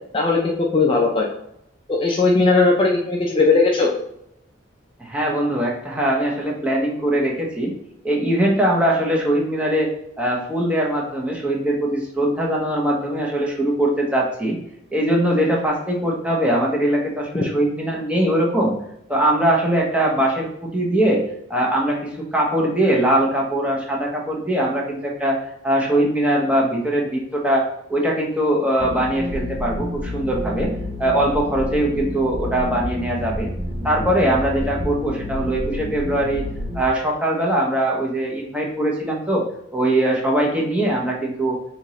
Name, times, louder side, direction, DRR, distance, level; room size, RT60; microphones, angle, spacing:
voice 1, 0.1-1.3 1.9-3.9 17.3-17.4, left 3 dB, 25° left, -1 dB, 0.4 m, -18 dB
voice 2, 5.0-7.7 8.0-9.9 10.2-14.6 14.9-18.7 19.1-21.2 21.5-30.7 31.0-33.5 33.8-36.4 36.7-39.5 39.7-41.6, right 1 dB, 5° right, -2 dB, 0.7 m, -21 dB
sound 1, 28.8-36.8, left 1 dB, 65° right, 1.0 m, -29 dB
5.1 x 2.8 x 3.0 m, 0.77 s
head